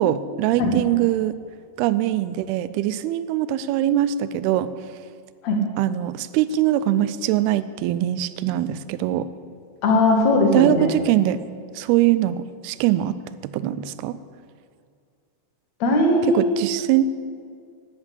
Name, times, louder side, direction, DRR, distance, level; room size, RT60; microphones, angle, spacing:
voice 1, 0.0-1.4 1.8-4.7 5.8-9.3 10.5-11.4 11.7-13.2 13.4-14.2 16.3-17.1, right 12 dB, 85° right, 14 dB, 2.5 m, -22 dB
voice 2, 9.8-10.9 15.8-16.4, left 2 dB, 50° left, 1 dB, 2.7 m, -19 dB
11.0 x 9.7 x 8.3 m, 2.2 s
omnidirectional pair, 4.5 m